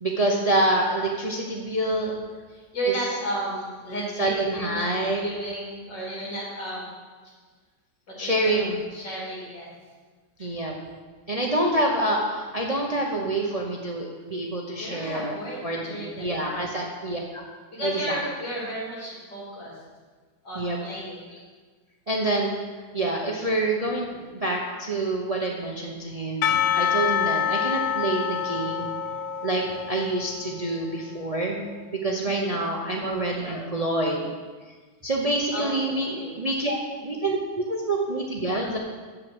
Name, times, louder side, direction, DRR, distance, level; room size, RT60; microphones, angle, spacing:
voice 1, 0.0-2.2 4.2-5.2 8.2-8.8 10.4-10.7 11.3-15.3 15.6-17.4 17.8-18.2 20.5-20.8 22.1-22.6 22.9-28.9 29.4-31.7 32.0-34.2 35.0-38.8, right 1 dB, 35° right, -1 dB, 0.6 m, -27 dB
voice 2, 2.5-4.9 5.2-6.9 8.1-8.5 8.9-9.7 10.4-10.5 14.8-16.7 17.7-19.8 20.4-21.2 32.2-32.6 35.5-36.4 38.5-38.6, right 1 dB, 85° left, -5 dB, 3.8 m, -33 dB
Percussion / Church bell, 26.4-30.8, left 8 dB, 70° left, 0.8 m, -26 dB
7.9 x 7.7 x 6.1 m, 1.4 s
omnidirectional pair, 1.9 m